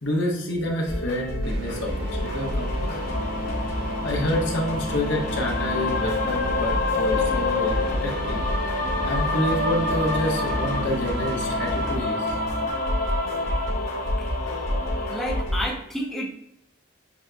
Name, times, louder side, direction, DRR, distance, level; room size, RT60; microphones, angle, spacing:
voice 1, 0.0-1.9 2.2-2.7 3.1-3.2 4.0-8.4 9.0-12.3, left 1 dB, 60° left, -1 dB, 1.1 m, -28 dB
sound 1, 0.8-15.7, equal, 85° left, 1.5 m, -30 dB
sound 2, 1.4-12.0, right 1 dB, 50° right, 0.4 m, -35 dB
sound 3, 1.9-15.4, left 3 dB, 45° left, 0.7 m, -29 dB
voice 2, 15.1-16.3, equal, ahead, -4 dB, 0.6 m, -30 dB
7.1 x 3.0 x 2.2 m, 0.78 s
head